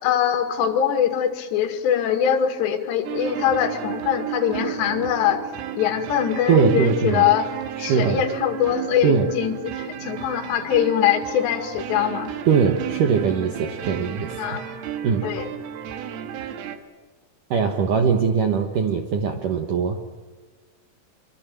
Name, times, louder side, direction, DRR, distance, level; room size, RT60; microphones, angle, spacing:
voice 1, 0.0-5.4 5.7-7.5 7.8-12.3 14.4-14.7 15.2-15.5, left 10 dB, 65° left, 6 dB, 4.1 m, -22 dB
sound 1, 3.1-16.8, right 10 dB, 90° right, 4.3 m, -33 dB
voice 2, 6.5-7.3 7.8-8.2 9.0-9.3 12.5-14.6 15.0-15.3 17.5-20.0, right 6 dB, 70° right, 5 dB, 2.0 m, -21 dB
25.0 x 25.0 x 7.7 m, 1.4 s
omnidirectional pair, 5.8 m